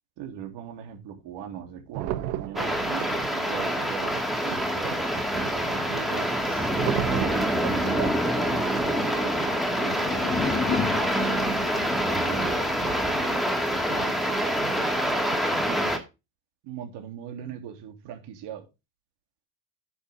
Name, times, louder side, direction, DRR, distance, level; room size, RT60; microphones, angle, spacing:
voice 1, 0.2-6.7 7.1-8.1 8.5-10.8 12.0-14.6 15.5-16.0 16.6-18.6, right 9 dB, 65° right, 3.3 m, -40 dB
sound 1, 1.9-15.4, right 13 dB, 85° right, 1.2 m, -38 dB
sound 2, 2.6-16.0, equal, ahead, 2.1 m, -26 dB
sound 3, 9.6-12.6, left 8 dB, 20° left, 0.5 m, -33 dB
10.0 x 7.2 x 3.6 m
cardioid pair, 130°, 44 cm